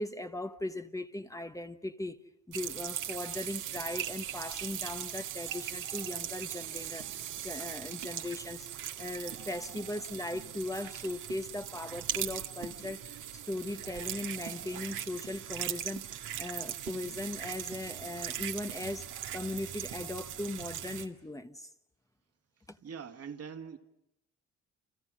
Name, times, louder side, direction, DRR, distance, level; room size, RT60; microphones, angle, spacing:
voice 1, 0.0-2.2 2.5-21.7 22.7-22.8, left 1 dB, 10° left, 1.1 m, -39 dB
sound 1, 2.5-21.1, right 11 dB, 85° right, 2.0 m, -39 dB
voice 2, 22.8-23.8, right 6 dB, 55° right, 2.1 m, -43 dB
29.5 x 29.0 x 6.3 m
cardioid pair, 90°, 30 cm